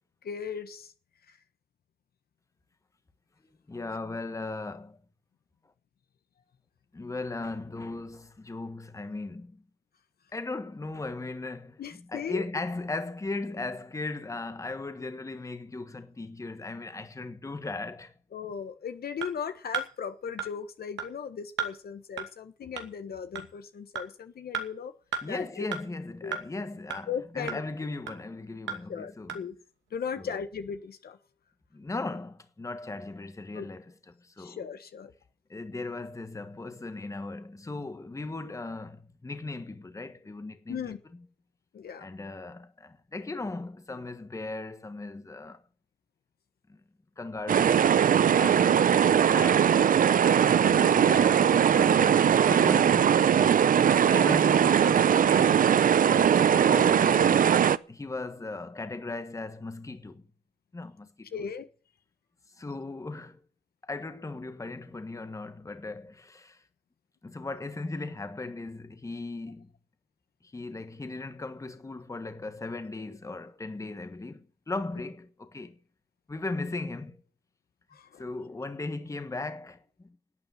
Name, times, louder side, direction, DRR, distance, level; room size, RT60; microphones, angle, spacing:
voice 1, 0.2-0.9 1.3-1.4 11.8-12.5 18.3-24.9 25.2-25.6 26.2-26.4 27.1-27.6 28.9-29.5 29.9-31.2 33.5-33.7 34.4-35.1 40.7-41.0 41.7-42.1 50.7-51.1 53.8-54.0 61.3-61.7 77.9-78.2, left 7 dB, 55° left, 1.4 m, -37 dB
voice 2, 3.7-5.0 6.9-9.6 10.3-18.1 25.2-29.5 30.2-30.4 31.7-33.9 34.2-34.6 35.5-40.9 42.0-45.6 46.7-46.8 47.2-47.8 48.3-48.9 49.3-49.8 50.5-53.7 54.0-55.7 56.0-60.2 60.7-61.4 62.6-63.4 63.8-66.6 67.2-69.7 70.5-75.8 76.3-77.2 78.2-80.1, left 3 dB, 15° left, 1.4 m, -37 dB
sound 1, 19.2-19.3 19.7-19.9 20.4-20.5 21.0-21.1 21.6-21.7 22.2-22.3 22.8-22.9 23.4-23.5 24.0-24.1 24.5-24.7 25.1-25.2 25.7-25.8 26.3-26.4 26.9-27.0 27.5-27.6 28.1-28.2 28.7-28.8 29.3-29.4, right 6 dB, 80° right, 2.5 m, -32 dB
sound 2, 47.5-57.8, right 8 dB, 45° right, 0.6 m, -21 dB
12.0 x 8.9 x 9.2 m
cardioid pair, 105°, 19 cm